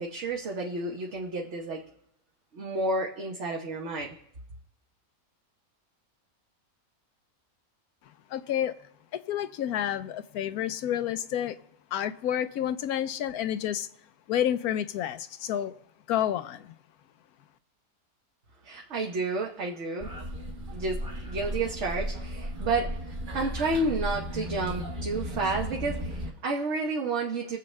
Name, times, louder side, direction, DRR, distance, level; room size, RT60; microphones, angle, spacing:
voice 1, 0.0-1.8 2.5-4.2 18.6-20.1 20.7-27.6, right 3 dB, 55° right, 1.3 m, -31 dB
voice 2, 8.3-11.6 11.9-13.9 14.3-15.7 16.1-16.7, left 10 dB, 90° left, 1.1 m, -30 dB
sound 1, 20.0-26.3, equal, 35° right, 1.4 m, -35 dB
22.5 x 7.6 x 3.3 m
omnidirectional pair, 1.5 m